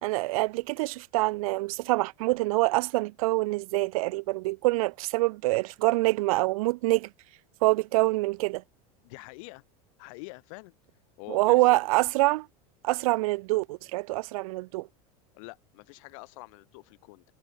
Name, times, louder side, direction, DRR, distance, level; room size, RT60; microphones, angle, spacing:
voice 1, 0.0-7.1 7.6-8.6 11.3-12.5 12.8-14.9, right 22 dB, 70° right, 3.0 m, -25 dB
voice 2, 9.0-9.6 10.0-10.7 11.2-11.8 15.3-17.2, left 29 dB, 65° left, 7.1 m, -45 dB
supercardioid pair, 145°, 18 cm